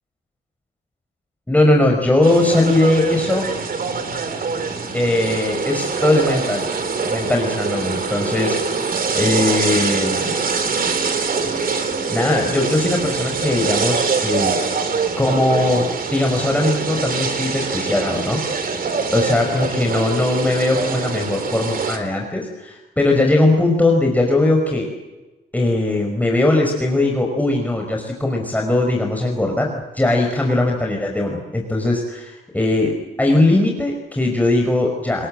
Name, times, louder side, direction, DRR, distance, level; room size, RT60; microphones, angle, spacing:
voice 1, 1.5-3.5 4.9-6.7 7.1-8.6 9.1-10.3 12.1-14.6 15.2-18.7 19.1-24.9 25.5-35.3, left 2 dB, 10° left, 1 dB, 5.2 m, -19 dB
sound 1, 2.2-22.0, right 4 dB, 45° right, 3.7 m, -24 dB
28.5 x 21.5 x 7.7 m, 1.1 s
cardioid pair, 90°, 20 cm